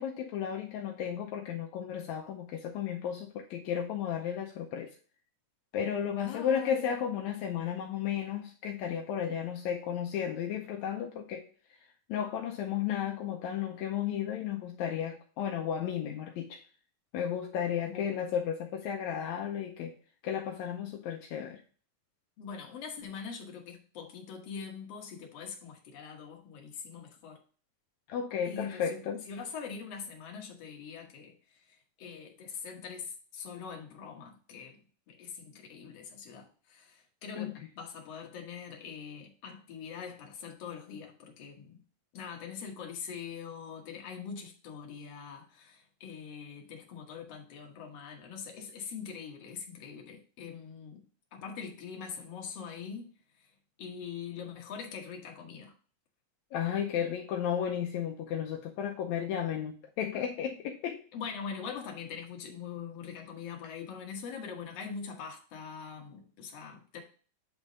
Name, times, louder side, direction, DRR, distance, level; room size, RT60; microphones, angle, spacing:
voice 1, 0.0-4.9 5.7-11.5 12.1-16.6 17.1-19.9 20.2-21.6 28.1-29.2 37.4-37.5 56.5-61.0, left 8 dB, 80° left, 1.7 m, -33 dB
voice 2, 6.2-6.9 17.9-18.2 22.4-27.4 28.4-34.8 35.1-41.8 42.1-51.1 51.3-53.5 53.8-55.7 61.1-67.0, left 6 dB, 60° left, 2.0 m, -43 dB
8.3 x 3.6 x 4.0 m
omnidirectional pair, 3.7 m